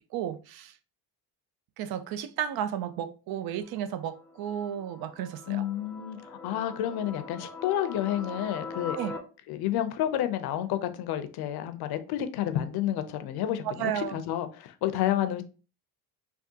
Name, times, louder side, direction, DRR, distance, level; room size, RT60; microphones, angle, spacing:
voice 1, 0.1-0.8 1.8-5.6 9.0-9.1 13.6-14.2, right 10 dB, 65° right, 0.5 m, -33 dB
sound 1, 3.6-9.2, left 3 dB, 10° left, 0.5 m, -43 dB
voice 2, 5.5-9.0 9.5-15.4, left 11 dB, 70° left, 0.6 m, -30 dB
3.5 x 2.3 x 2.7 m
supercardioid pair, 80°, 40 cm